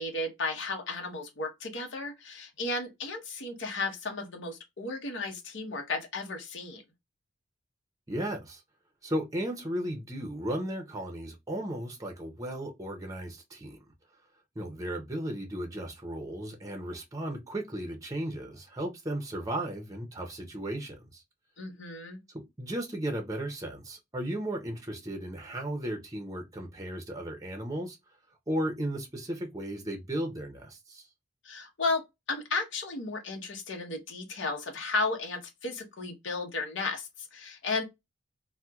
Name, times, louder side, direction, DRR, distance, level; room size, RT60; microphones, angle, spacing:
voice 1, 0.0-6.8 21.6-22.2 31.4-32.0 32.3-37.8, left 3 dB, 70° left, 0.9 m, -34 dB
voice 2, 8.1-8.6 9.0-13.8 14.6-21.2 22.6-28.0 28.5-31.1, right 1 dB, 20° right, 0.6 m, -35 dB
4.2 x 2.1 x 2.3 m
head